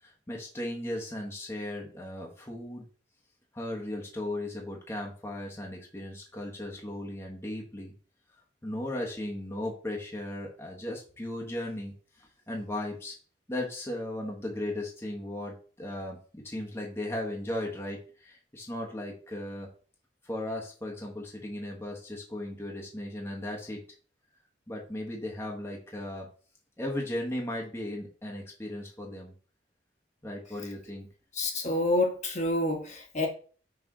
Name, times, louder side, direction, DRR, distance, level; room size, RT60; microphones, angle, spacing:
voice 1, 0.0-2.8 3.5-7.9 8.6-13.2 13.5-19.7 20.2-23.8 24.7-26.3 26.8-29.3 30.2-31.1, left 1 dB, 15° left, 1.1 m, -36 dB
voice 2, 31.3-33.3, left 2 dB, 40° left, 1.3 m, -28 dB
6.1 x 3.4 x 4.8 m
head